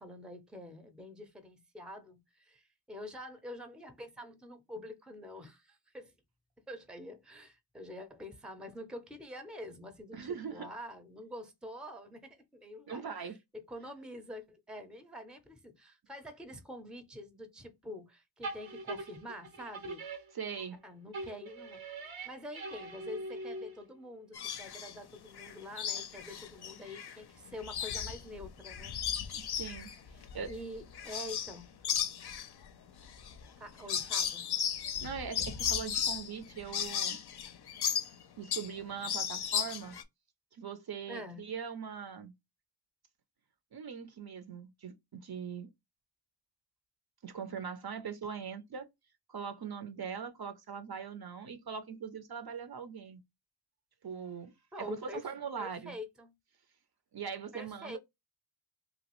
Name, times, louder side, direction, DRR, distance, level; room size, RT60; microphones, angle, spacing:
voice 1, 0.0-6.1 6.7-13.1 13.5-20.0 20.8-21.8 22.2-28.9 30.5-31.7 33.6-34.5 41.1-41.4 54.7-55.2 55.6-56.3 57.5-58.0, left 1 dB, ahead, 0.5 m, -46 dB
voice 2, 10.1-10.7 12.9-13.4 20.3-20.8 29.3-29.9 30.3-30.6 34.8-37.2 38.4-40.0 40.5-42.3 43.7-45.7 47.2-48.9 49.3-53.2 54.0-54.5 54.8-55.9 57.1-58.0, right 6 dB, 55° right, 0.5 m, -41 dB
sound 1, 18.4-20.8 21.1-24.0, right 2 dB, 85° right, 0.8 m, -42 dB
sound 2, 24.3-24.9 25.4-27.2 27.5-31.6 31.8-38.8 39.0-40.0, left 8 dB, 60° left, 0.5 m, -35 dB
3.0 x 2.3 x 2.9 m
wide cardioid pair, 55°, 46 cm